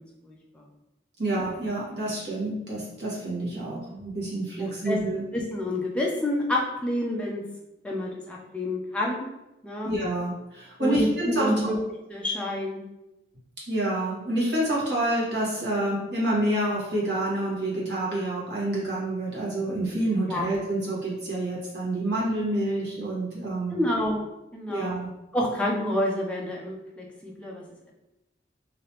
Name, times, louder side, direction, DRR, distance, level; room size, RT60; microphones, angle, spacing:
voice 1, 1.2-5.2 9.8-11.7 13.7-23.7 24.7-25.1, right 1 dB, 70° right, -6 dB, 1.4 m, -28 dB
voice 2, 5.3-7.4 7.8-9.3 9.6-9.9 10.8-11.8 12.1-12.8 20.3-20.5 23.7-24.2 24.5-24.9 25.3-27.6, left 1 dB, 5° left, -3 dB, 0.5 m, -28 dB
3.2 x 2.9 x 2.9 m, 0.94 s
head